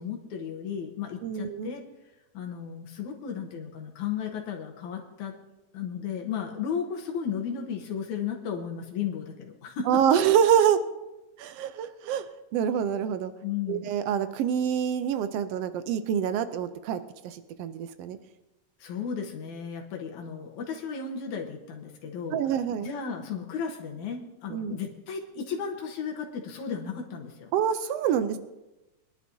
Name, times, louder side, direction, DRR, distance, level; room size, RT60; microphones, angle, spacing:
voice 1, 0.0-1.8 2.3-5.3 5.7-10.0 13.4-13.9 18.8-22.4 22.8-27.5, left 7 dB, 75° left, 1 dB, 2.5 m, -34 dB
voice 2, 1.2-1.7 9.9-10.8 11.4-12.3 12.5-13.3 13.7-18.2 22.3-22.9 24.5-24.8 27.5-28.4, right 9 dB, 85° right, 11 dB, 1.4 m, -26 dB
23.0 x 11.0 x 2.7 m, 1.0 s
omnidirectional pair, 3.5 m